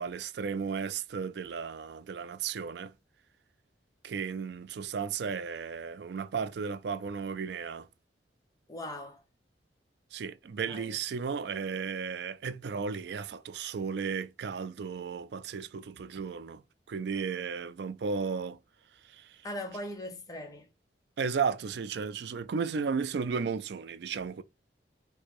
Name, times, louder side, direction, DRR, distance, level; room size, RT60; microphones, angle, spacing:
voice 1, 0.0-2.9 4.0-7.9 10.1-16.6 16.9-18.6 19.1-19.4 21.2-24.4, right 5 dB, 70° right, 0.4 m, -34 dB
voice 2, 8.7-9.2 10.7-11.0 19.4-20.7, left 1 dB, 20° left, 0.9 m, -40 dB
4.8 x 2.2 x 4.3 m
head